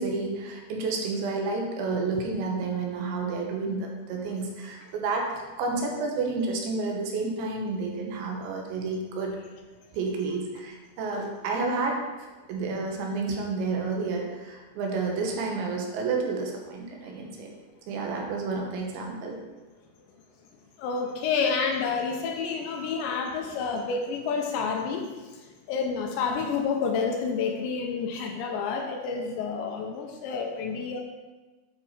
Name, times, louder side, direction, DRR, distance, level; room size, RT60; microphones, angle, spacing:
voice 1, 0.0-9.4 9.9-12.0 12.5-17.5 17.9-19.4, right 3 dB, 75° right, 0 dB, 3.2 m, -30 dB
voice 2, 20.8-25.1 25.7-31.0, left 5 dB, 80° left, 2 dB, 2.8 m, -29 dB
9.0 x 5.2 x 4.2 m, 1.2 s
omnidirectional pair, 5.5 m